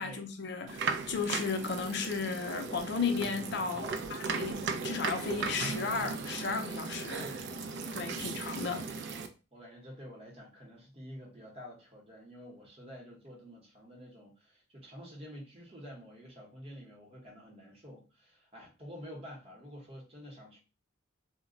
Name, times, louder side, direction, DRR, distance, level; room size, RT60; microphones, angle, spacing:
voice 1, 0.0-7.3 7.9-8.9, left 5 dB, 60° left, 0.5 m, -34 dB
sound 1, 0.7-9.3, right 4 dB, 60° right, 0.4 m, -37 dB
voice 2, 3.8-4.4 7.1-9.1 9.5-20.6, equal, 30° right, 0.9 m, -49 dB
2.1 x 2.1 x 3.6 m
head